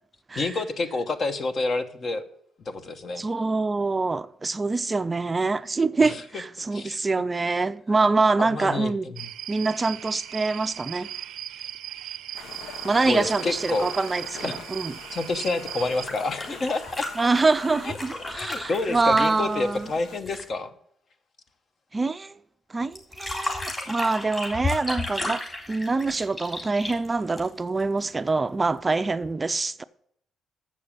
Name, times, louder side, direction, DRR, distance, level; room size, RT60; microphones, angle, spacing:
voice 1, 0.3-2.2 2.6-3.2 6.0-6.2 6.7-7.0 8.4-9.3 13.0-13.9 14.4-14.5 15.1-17.0 17.8-18.0 18.3-20.7, left 3 dB, 50° left, 1.0 m, -28 dB
voice 2, 3.2-9.1 9.5-11.1 12.8-14.9 17.2-19.9 21.9-22.4 22.7-29.8, right 3 dB, 25° right, 0.4 m, -25 dB
sound 1, 9.2-16.1, right 11 dB, 80° right, 0.5 m, -38 dB
sound 2, 12.3-20.2, left 4 dB, 90° left, 1.1 m, -43 dB
sound 3, 15.9-20.5 23.0-27.8 29.2-29.3, left 2 dB, 25° left, 3.5 m, -34 dB
7.4 x 6.6 x 7.3 m
cardioid pair, 90°, 0 cm